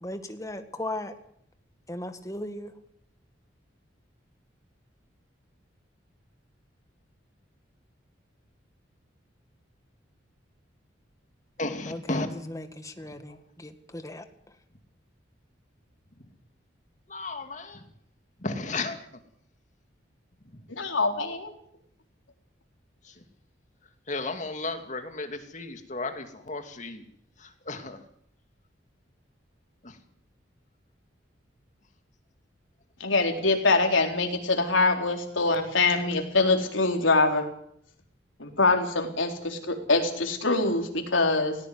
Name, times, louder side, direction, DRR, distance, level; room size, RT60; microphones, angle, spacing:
voice 1, 0.0-1.1 1.9-2.7 11.9-14.2, left 1 dB, 15° left, 8 dB, 1.8 m, -37 dB
voice 2, 11.6-12.3 17.1-17.8 18.4-19.0 24.1-27.0 27.4-28.0 29.8-30.0, left 3 dB, 40° left, 7 dB, 2.4 m, -34 dB
voice 3, 20.8-21.5 33.0-37.5 38.4-41.6, left 3 dB, 90° left, 4 dB, 4.2 m, -24 dB
18.0 x 17.5 x 9.6 m, 0.69 s
head